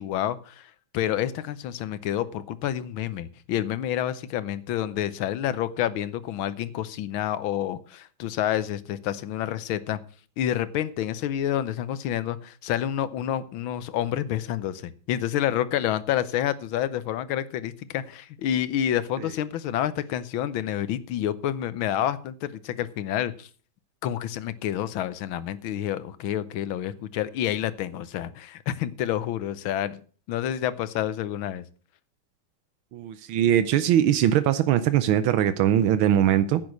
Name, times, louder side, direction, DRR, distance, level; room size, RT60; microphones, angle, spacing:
voice 1, 0.0-10.0 10.4-23.5 24.0-30.0 30.3-31.6, left 11 dB, 80° left, 1.6 m, -28 dB
voice 2, 32.9-36.6, right 11 dB, 85° right, 1.6 m, -21 dB
10.5 x 8.5 x 6.2 m
omnidirectional pair, 2.2 m